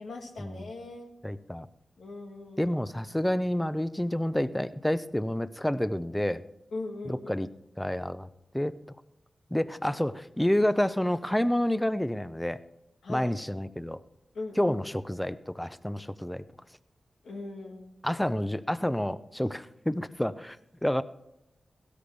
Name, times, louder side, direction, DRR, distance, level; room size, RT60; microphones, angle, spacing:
voice 1, 0.0-1.1 2.0-2.8 6.7-7.5 13.0-13.3 14.3-14.8 17.2-18.0, left 3 dB, 85° left, 0 dB, 1.8 m, -40 dB
voice 2, 1.2-1.7 2.6-6.4 7.1-7.5 7.8-8.3 8.5-8.7 9.5-12.6 13.1-14.0 14.6-16.4 18.0-20.6 20.8-21.0, left 1 dB, 10° left, 14 dB, 0.7 m, -29 dB
16.0 x 13.5 x 3.4 m, 0.86 s
cardioid pair, 40°, 0 cm